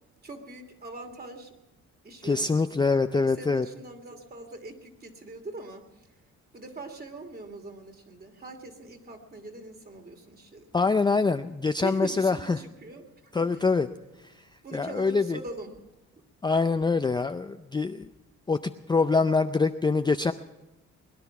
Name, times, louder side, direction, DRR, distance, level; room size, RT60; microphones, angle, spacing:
voice 1, 0.2-1.5 2.0-6.1 6.5-10.8 11.8-13.6 14.6-15.7, right 2 dB, 30° right, 4 dB, 2.6 m, -42 dB
voice 2, 2.2-3.7 10.7-12.6 13.3-13.9 14.2-14.3 14.7-15.4 16.4-18.1 18.5-20.3, left 4 dB, 15° left, 8 dB, 0.4 m, -24 dB
21.5 x 10.5 x 5.9 m, 0.99 s
cardioid pair, 90°, 30 cm